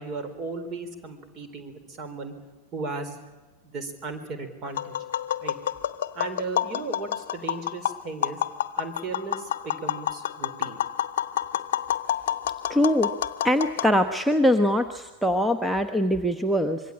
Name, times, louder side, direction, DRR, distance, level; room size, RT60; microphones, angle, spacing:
voice 1, 0.0-2.3 2.7-3.2 3.6-4.9 5.4-5.6 6.1-8.4 8.8-10.8, right 3 dB, 30° right, 10 dB, 4.1 m, -36 dB
Tap, 4.7-13.9, left 10 dB, 55° left, 0.9 m, -29 dB
voice 2, 12.7-13.1 13.4-16.8, left 1 dB, 5° right, 8 dB, 1.2 m, -22 dB
25.5 x 22.5 x 8.7 m, 1.2 s
figure-of-eight pair, 90°, 0 cm